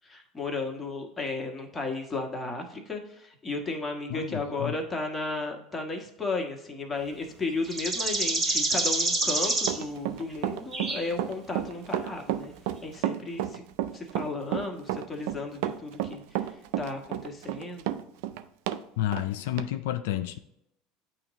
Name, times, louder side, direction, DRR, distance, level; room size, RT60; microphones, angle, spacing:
voice 1, 0.0-12.5 12.8-13.6 13.9-16.5 16.8-17.9, left 3 dB, 20° left, 1 dB, 1.3 m, -34 dB
voice 2, 4.1-4.7 19.0-20.4, left 13 dB, 80° left, 8 dB, 0.3 m, -30 dB
sound 1, 7.6-9.8 10.7-11.1, right 2 dB, 25° right, 1.5 m, -27 dB
Run, 9.6-18.8 19.1-19.2 19.6-19.7, right 12 dB, 75° right, 0.4 m, -31 dB
9.0 x 3.1 x 3.6 m, 0.79 s
hypercardioid pair, 90°, 0 cm